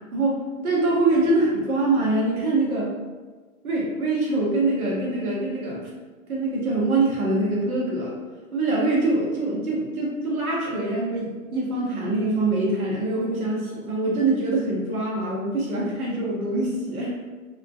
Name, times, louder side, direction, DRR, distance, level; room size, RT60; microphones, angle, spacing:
voice 1, 0.1-2.9 3.6-5.9 6.3-8.1 8.5-17.2, right 2 dB, 85° right, -4 dB, 1.2 m, -24 dB
3.4 x 2.4 x 2.5 m, 1.3 s
hypercardioid pair, 150°, 42 cm